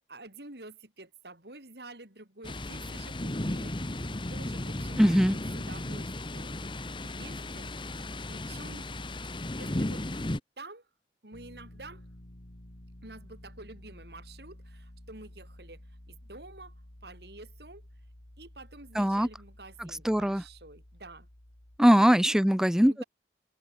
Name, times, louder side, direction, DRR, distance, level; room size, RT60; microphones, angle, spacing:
voice 1, 0.0-5.0 5.5-6.6 7.0-9.0 9.5-10.1 10.6-10.9 11.2-12.1 13.0-16.7 17.0-17.9 18.4-21.3 21.9-22.1 22.8-23.0, right 2 dB, 70° right, 5.0 m, -49 dB
Thunder, 2.4-10.4, left 1 dB, 30° left, 1.3 m, -35 dB
voice 2, 5.0-5.4 19.0-19.3 19.8-20.4 21.8-23.0, equal, 5° right, 0.4 m, -22 dB
sound 1, 11.3-21.8, left 1 dB, 70° left, 2.7 m, -52 dB
open air
head